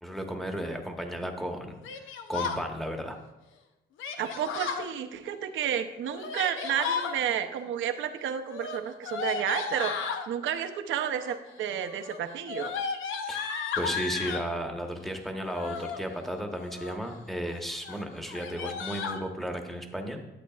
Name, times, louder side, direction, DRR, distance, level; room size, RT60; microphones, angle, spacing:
voice 1, 0.0-3.2 13.2-13.5 13.8-20.2, equal, ahead, 4 dB, 1.1 m, -34 dB
Yell, 1.8-2.6 4.0-4.9 6.0-7.2 8.5-10.3 11.1-11.5 11.8-14.5 15.4-16.0 16.5-17.1 17.5-17.6 17.8-18.0 18.3-19.2, left 6 dB, 85° left, 0.7 m, -34 dB
voice 2, 4.2-9.9 10.3-12.7, right 9 dB, 75° right, 8 dB, 0.7 m, -31 dB
12.0 x 8.0 x 2.4 m, 1.0 s
cardioid pair, 90°, 20 cm